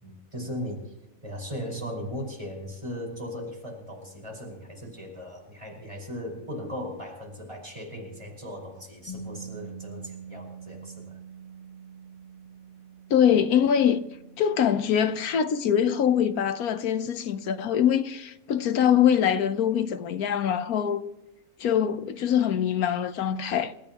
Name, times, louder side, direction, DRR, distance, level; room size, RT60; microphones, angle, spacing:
voice 1, 0.0-0.9 1.2-11.2, equal, 20° right, 5.3 m, -37 dB
Bass guitar, 9.1-15.3, right 5 dB, 60° left, 3.7 m, -45 dB
voice 2, 13.1-14.0 14.4-21.0 21.6-23.7, left 9 dB, 85° left, 1.4 m, -23 dB
28.5 x 14.5 x 3.0 m
omnidirectional pair, 1.5 m